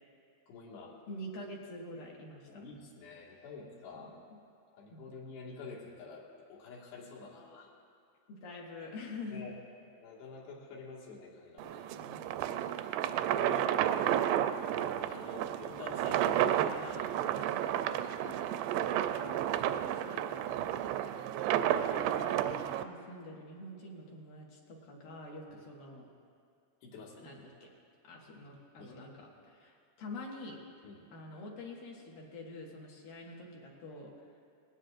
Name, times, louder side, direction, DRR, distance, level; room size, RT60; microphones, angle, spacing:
voice 1, 0.5-0.9 2.5-4.1 4.7-7.7 9.3-9.6 10.0-11.9 12.8-13.7 15.0-17.2 20.5-20.9 26.8-27.3 28.8-29.1 30.8-31.0, left 4 dB, 90° left, -3 dB, 4.1 m, -48 dB
voice 2, 1.1-2.5 3.3-3.5 3.9-4.1 4.9-5.1 8.3-9.4 11.9-12.4 17.9-20.3 21.7-26.1 27.2-27.7 28.0-30.6 31.1-34.1, left 1 dB, 65° left, -2 dB, 3.1 m, -47 dB
sound 1, 11.6-22.8, right 11 dB, 85° right, 2.7 m, -32 dB
19.5 x 17.5 x 2.5 m, 2.3 s
omnidirectional pair, 4.7 m